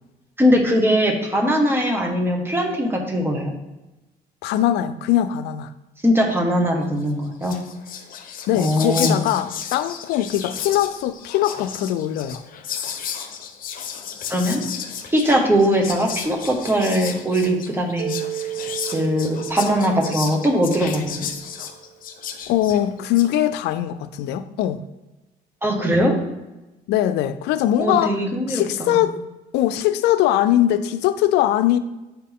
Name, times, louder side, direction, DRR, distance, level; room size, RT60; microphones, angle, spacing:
voice 1, 0.4-3.5 6.0-7.6 8.5-9.2 14.3-14.6 15.1-18.1 18.9-21.3 25.6-26.1 27.8-29.0, equal, 15° right, 1 dB, 1.5 m, -20 dB
voice 2, 4.4-5.7 8.5-12.4 22.5-24.8 26.9-28.1 28.5-29.2 29.5-31.8, left 12 dB, 85° left, 11 dB, 0.4 m, -21 dB
Whispering, 7.1-7.2 7.4-23.3, left 8 dB, 55° left, 0.9 m, -33 dB
Mallet percussion, 18.0-22.1, right 13 dB, 70° right, 0.5 m, -34 dB
9.0 x 4.4 x 3.6 m, 1.0 s
cardioid pair, 110°, 17 cm